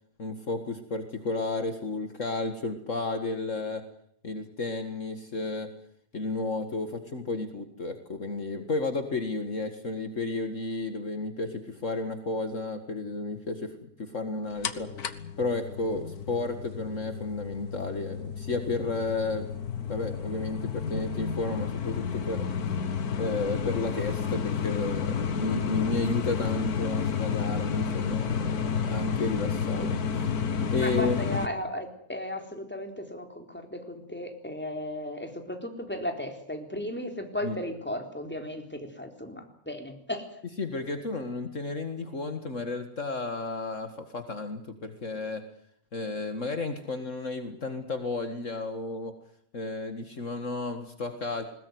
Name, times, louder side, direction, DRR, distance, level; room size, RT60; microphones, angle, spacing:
voice 1, 0.2-3.8 4.2-5.7 6.1-14.9 15.4-19.5 19.9-22.4 23.2-28.4 28.8-30.0 30.7-31.2 37.4-37.6 40.6-45.4 45.9-49.1 49.5-51.4, left 3 dB, 55° left, 7 dB, 2.2 m, -32 dB
sound 1, 14.6-31.5, left 6 dB, 90° left, 1.8 m, -31 dB
voice 2, 30.8-40.3, left 1 dB, 5° left, 4 dB, 4.0 m, -35 dB
21.0 x 20.5 x 9.4 m, 0.65 s
omnidirectional pair, 1.6 m